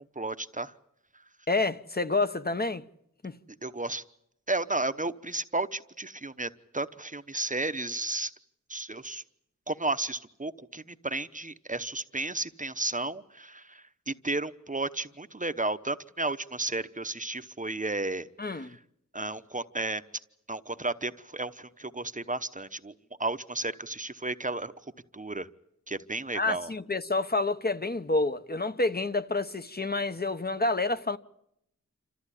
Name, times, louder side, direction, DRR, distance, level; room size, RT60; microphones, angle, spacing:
voice 1, 0.2-0.7 3.6-4.0 4.5-8.3 8.7-9.2 9.7-18.8 19.1-20.0 20.5-22.9 23.2-24.7 25.1-25.5 25.9-26.7, right 2 dB, 25° right, 0.9 m, -33 dB
voice 2, 1.5-2.8 3.2-3.3 18.4-18.7 26.3-31.2, left 3 dB, 30° left, 0.9 m, -28 dB
27.5 x 14.0 x 9.9 m
wide cardioid pair, 80°, 30 cm